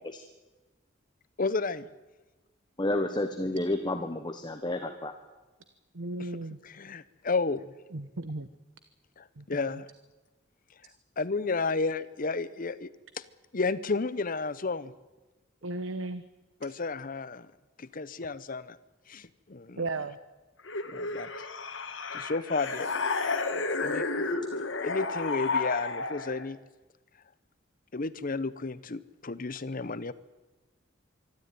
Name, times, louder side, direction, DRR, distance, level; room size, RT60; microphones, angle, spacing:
voice 1, 1.4-1.9 6.6-7.6 9.2-9.9 11.2-12.9 13.5-14.9 16.6-17.5 17.8-18.8 19.1-19.8 20.8-21.5 22.1-22.9 23.8-24.1 24.8-26.6 27.9-30.1, left 3 dB, 45° left, 16 dB, 0.8 m, -32 dB
voice 2, 2.8-5.1, left 1 dB, 25° left, 7 dB, 1.2 m, -30 dB
voice 3, 5.9-6.6 7.9-8.5 9.4-9.8 15.6-16.2 19.8-20.2, right 2 dB, 85° right, 12 dB, 1.0 m, -35 dB
sound 1, 20.7-26.5, left 3 dB, 65° left, 1.9 m, -32 dB
24.5 x 13.0 x 9.4 m, 1.1 s
head